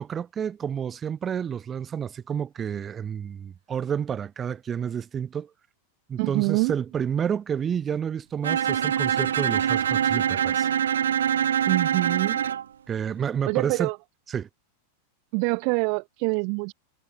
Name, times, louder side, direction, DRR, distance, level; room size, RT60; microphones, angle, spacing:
voice 1, 0.0-5.5 6.1-10.7 12.9-13.9 14.3-14.5, right 8 dB, 25° right, 4.8 m, -30 dB
voice 2, 6.2-6.7 11.7-12.4 13.5-14.0 15.3-16.7, right 40 dB or more, 45° right, 2.8 m, -25 dB
Bowed string instrument, 8.4-12.7, right 9 dB, 65° right, 0.9 m, -24 dB
figure-of-eight pair, 90°, 0 cm